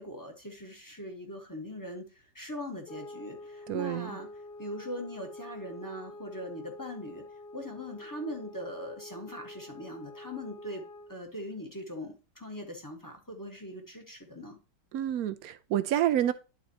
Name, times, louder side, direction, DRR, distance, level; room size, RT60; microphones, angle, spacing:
voice 1, 0.0-4.3 4.6-7.2 7.5-10.8 11.1-14.6, left 1 dB, 15° left, 1.0 m, -41 dB
sound 1, 2.8-11.2, left 2 dB, 85° left, 0.5 m, -47 dB
voice 2, 3.7-4.1 14.9-16.3, right 11 dB, 70° right, 0.9 m, -28 dB
11.5 x 4.2 x 2.8 m
omnidirectional pair, 1.8 m